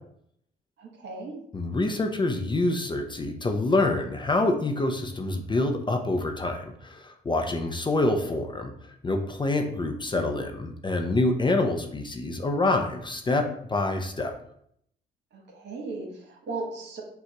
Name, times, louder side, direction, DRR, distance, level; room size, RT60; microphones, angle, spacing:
voice 1, 0.8-1.4 15.3-17.0, right 3 dB, 60° right, 0 dB, 1.3 m, -37 dB
voice 2, 1.5-8.7 9.0-13.4 13.7-14.3, left 2 dB, 25° left, 4 dB, 0.5 m, -26 dB
6.3 x 2.3 x 3.0 m, 0.68 s
cardioid pair, 90°, 20 cm